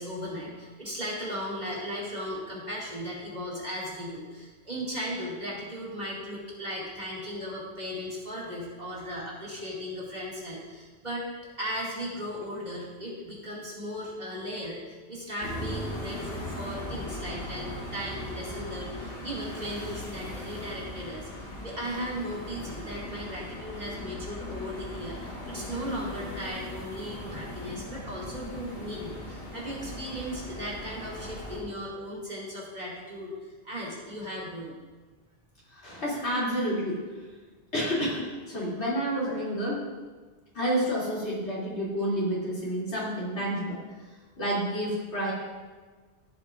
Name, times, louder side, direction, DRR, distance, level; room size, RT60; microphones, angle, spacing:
voice 1, 0.0-11.2 11.6-21.3 21.6-33.3 33.6-34.8, equal, 40° right, -6 dB, 2.6 m, -37 dB
sound 1, 15.4-31.6, left 1 dB, 60° left, 2.0 m, -39 dB
voice 2, 35.7-37.0 37.7-39.8 40.5-43.8 44.4-45.3, equal, 90° left, -7 dB, 3.3 m, -29 dB
14.5 x 7.4 x 2.6 m, 1.4 s
omnidirectional pair, 1.1 m